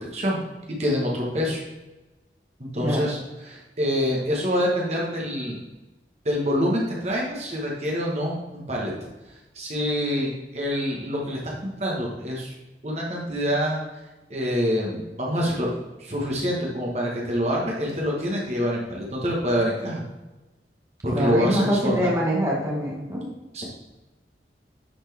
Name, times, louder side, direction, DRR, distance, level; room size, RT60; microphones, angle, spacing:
voice 1, 0.8-1.6 2.7-3.2 3.4-5.6 6.2-8.9 9.5-12.5 12.8-13.8 14.3-15.7 16.0-20.0 21.0-22.1 23.5-23.6, equal, 40° right, -2 dB, 1.4 m, -26 dB
voice 2, 2.8-3.1 21.1-23.3, equal, 20° right, -4 dB, 1.4 m, -24 dB
10.0 x 4.3 x 3.5 m, 1.1 s
head